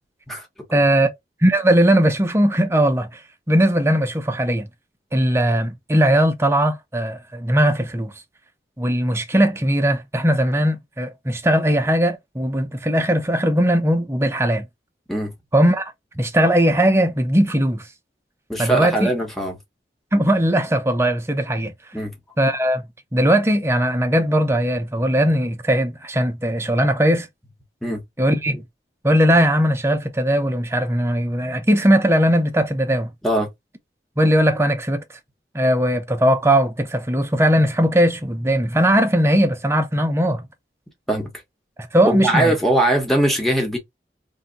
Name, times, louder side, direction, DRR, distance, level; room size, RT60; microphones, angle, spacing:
voice 1, 0.7-1.1 1.4-3.2 3.5-4.7 5.1-8.1 8.8-14.6 15.5-15.8 16.2-17.8 18.6-19.1 20.1-21.7 22.4-22.8 23.1-27.3 28.2-28.6 29.0-33.1 34.2-35.0 35.5-40.4 41.8-42.5, equal, 15° right, 0.6 m, -19 dB
voice 2, 18.5-19.5 21.9-22.1 27.8-28.0 33.2-33.5 41.1-41.3 42.0-43.8, right 1 dB, ahead, 1.1 m, -21 dB
2.7 x 2.2 x 3.9 m
head